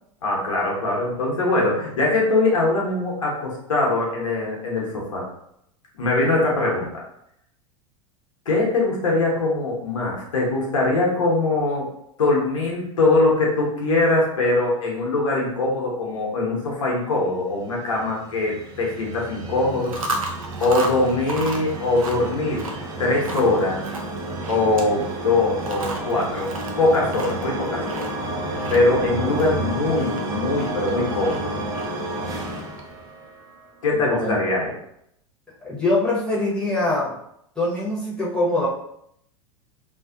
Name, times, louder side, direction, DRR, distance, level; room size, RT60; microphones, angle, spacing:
voice 1, 0.2-5.2 5.9-6.9 8.5-11.9 12.2-20.0 20.6-23.8 24.5-26.5 26.8-28.0 28.7-31.5 33.8-34.7, left 2 dB, 70° left, -2 dB, 0.8 m, -22 dB
sound 1, 17.6-33.7, right 2 dB, 20° right, 0.4 m, -31 dB
Chewing mastication, 19.7-32.9, right 2 dB, 80° right, 0.4 m, -35 dB
voice 2, 33.9-34.4 35.6-37.1 37.6-38.7, left 2 dB, 5° left, -7 dB, 0.9 m, -23 dB
2.5 x 2.3 x 2.4 m, 0.74 s
figure-of-eight pair, 85°, 18 cm